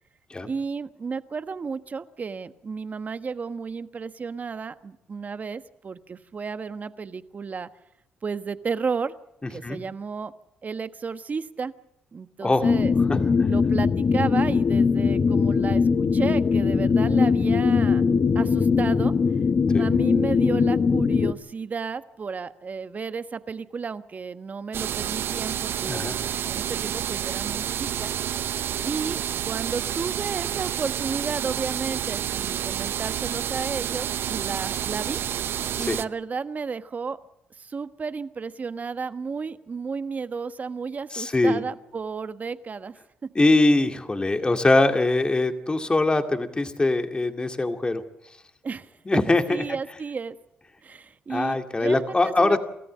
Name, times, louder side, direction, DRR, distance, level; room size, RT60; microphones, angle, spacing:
voice 1, 0.4-7.7 8.2-9.1 9.5-10.3 10.6-11.7 12.1-12.9 13.5-18.1 18.3-19.1 19.8-26.2 26.5-28.1 28.8-35.2 35.8-37.2 37.6-42.9 48.6-48.9 49.3-50.4 50.8-52.6, right 5 dB, 40° right, 11 dB, 1.2 m, -33 dB
voice 2, 12.4-12.7 13.1-13.2 19.7-19.8 25.8-26.2 35.8-36.0 41.1-41.6 43.4-48.0 49.1-49.6 51.3-52.6, left 2 dB, 25° left, 6 dB, 2.3 m, -22 dB
sound 1, 12.6-21.3, left 5 dB, 45° left, 1.0 m, -21 dB
sound 2, 24.7-36.1, right 10 dB, 70° right, 0.7 m, -29 dB
27.0 x 14.0 x 7.5 m, 0.83 s
supercardioid pair, 60°, 4 cm